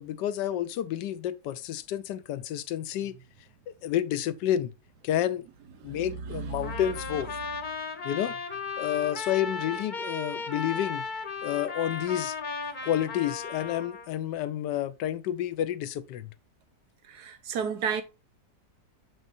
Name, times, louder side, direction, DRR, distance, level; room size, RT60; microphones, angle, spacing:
voice 1, 0.0-3.2 3.8-4.7 5.0-5.5 5.8-7.3 8.0-8.4 8.8-11.1 11.4-12.4 12.8-16.3, left 11 dB, 80° left, 1.2 m, -30 dB
voice 2, 5.8-6.8 17.1-18.0, right 6 dB, 70° right, 1.5 m, -33 dB
Trumpet, 6.6-14.1, left 4 dB, 35° left, 0.9 m, -36 dB
7.2 x 6.3 x 2.6 m
omnidirectional pair, 1.9 m